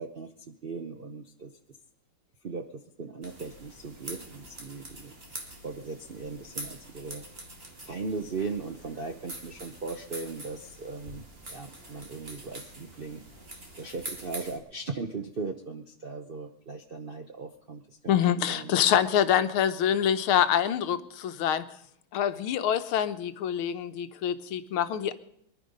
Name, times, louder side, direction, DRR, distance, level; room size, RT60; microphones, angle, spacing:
voice 1, 0.0-1.5 2.4-5.1 5.6-7.2 7.8-13.2 13.7-18.8, right 4 dB, 60° right, 5 dB, 0.5 m, -38 dB
sound 1, 3.2-14.6, right 1 dB, 30° right, 2.2 m, -44 dB
voice 2, 18.1-21.7 22.1-25.1, left 9 dB, 90° left, 11 dB, 1.7 m, -25 dB
23.0 x 11.0 x 5.3 m, 0.75 s
omnidirectional pair, 2.3 m